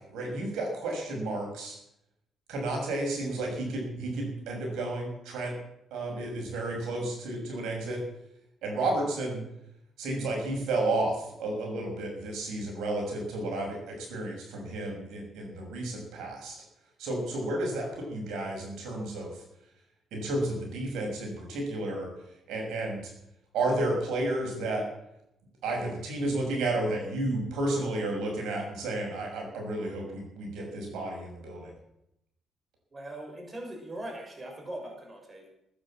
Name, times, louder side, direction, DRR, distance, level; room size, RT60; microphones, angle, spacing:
voice 1, 0.1-1.8 2.5-5.5 5.9-8.0 8.6-9.4 10.0-16.5 17.0-19.3 20.1-22.1 22.5-23.0 23.5-24.8 25.6-31.7, right 2 dB, 85° right, 1 dB, 6.5 m, -32 dB
voice 2, 32.9-35.6, right 1 dB, 30° right, 2 dB, 5.9 m, -40 dB
19.0 x 9.8 x 7.7 m, 0.80 s
cardioid pair, 90°, 0 cm